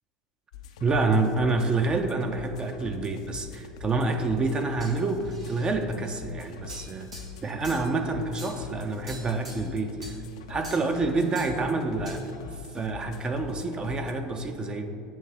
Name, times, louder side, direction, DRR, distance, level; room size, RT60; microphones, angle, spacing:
Loop in progression - Dance music, 0.5-14.1, left 6 dB, 75° left, 0.4 m, -43 dB
voice 1, 0.8-7.1 7.4-10.1 10.5-12.2 12.7-14.9, right 3 dB, 25° right, 6 dB, 0.4 m, -27 dB
sound 1, 4.8-5.7 6.7-7.9 8.4-8.6 9.1-9.7 10.0-10.2 10.6-11.0 11.3-11.6 12.1-12.3, right 2 dB, 90° right, 1.3 m, -45 dB
7.2 x 2.7 x 5.6 m, 2.5 s
hypercardioid pair, 85°, 3 cm